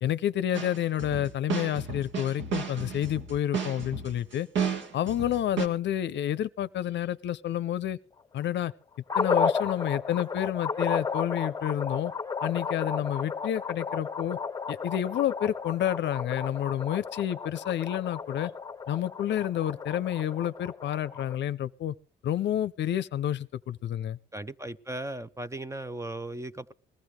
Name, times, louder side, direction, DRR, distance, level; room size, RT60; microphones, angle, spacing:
voice 1, 0.0-4.5 4.9-8.0 8.3-8.7 9.1-12.1 12.4-14.4 14.7-18.5 18.9-21.9 22.2-24.2, left 11 dB, 65° left, 0.6 m, -29 dB
sound 1, 0.5-5.7, right 6 dB, 70° right, 1.8 m, -33 dB
sound 2, 9.1-21.4, left 5 dB, 20° left, 0.8 m, -33 dB
voice 2, 24.3-26.7, right 2 dB, 15° right, 0.6 m, -37 dB
20.5 x 14.5 x 3.3 m
cardioid pair, 90°, 20 cm